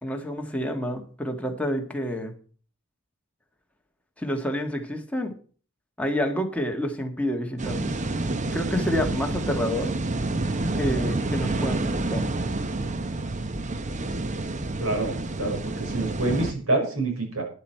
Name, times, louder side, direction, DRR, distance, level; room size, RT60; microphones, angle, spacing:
voice 1, 0.0-2.3 4.2-5.3 6.0-8.0 8.4-9.9 10.7-12.3, equal, 5° left, 3 dB, 1.7 m, -28 dB
sound 1, 7.6-16.5, right 2 dB, 35° right, 0.8 m, -28 dB
voice 2, 14.8-17.4, right 2 dB, 75° right, 2 dB, 5.3 m, -27 dB
12.5 x 10.5 x 4.5 m, 0.42 s
head